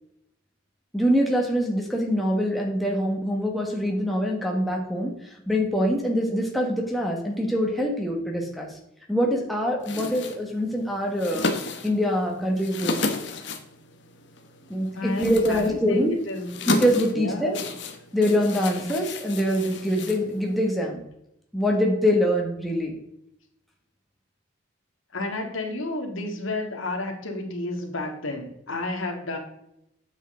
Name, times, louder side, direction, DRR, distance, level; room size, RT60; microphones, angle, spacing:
voice 1, 0.9-5.1 5.5-8.7 9.1-11.5 11.8-13.1 14.7-16.1 16.7-17.6 18.1-21.0 21.5-23.0, equal, ahead, -1 dB, 1.5 m, -24 dB
sound 1, 9.8-20.7, left 3 dB, 60° left, 1.1 m, -33 dB
voice 2, 14.9-16.5 17.1-17.7 25.1-29.4, left 2 dB, 80° left, 3 dB, 2.0 m, -31 dB
9.0 x 7.5 x 3.8 m, 0.80 s
head